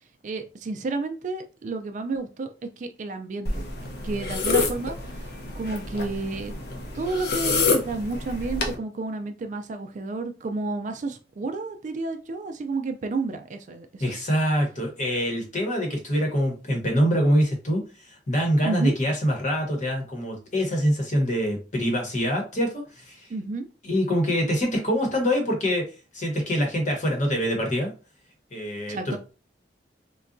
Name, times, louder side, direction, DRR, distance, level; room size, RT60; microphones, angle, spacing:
voice 1, 0.2-2.5 2.8-3.7 4.0-5.0 5.5-6.5 6.9-14.0 18.6-19.0 23.3-23.7 28.9-29.2, right 3 dB, 45° right, 0.3 m, -31 dB
sound 1, 3.5-8.8, left 3 dB, 65° left, 0.6 m, -28 dB
voice 2, 14.0-23.3 23.8-25.8 26.1-27.9 28.5-29.2, equal, 45° left, 1.0 m, -25 dB
3.8 x 2.2 x 2.5 m
head